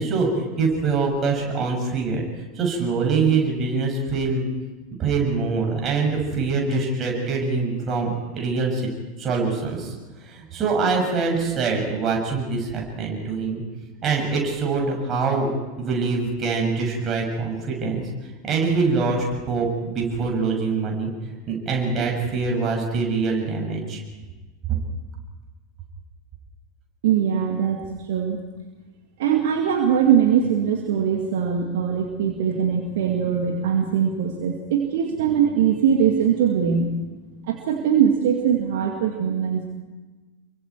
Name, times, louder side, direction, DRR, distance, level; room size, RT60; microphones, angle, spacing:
voice 1, 0.0-2.2 2.6-4.5 5.0-8.8 9.2-9.9 10.2-13.6 14.0-15.5 15.8-18.1 18.4-21.1 21.5-24.0, right 4 dB, 30° right, 1 dB, 7.0 m, -24 dB
voice 2, 27.0-28.4 29.2-36.9 37.5-39.7, right 8 dB, 60° right, 2 dB, 2.3 m, -21 dB
28.5 x 23.5 x 4.8 m, 1.2 s
figure-of-eight pair, 85°, 0 cm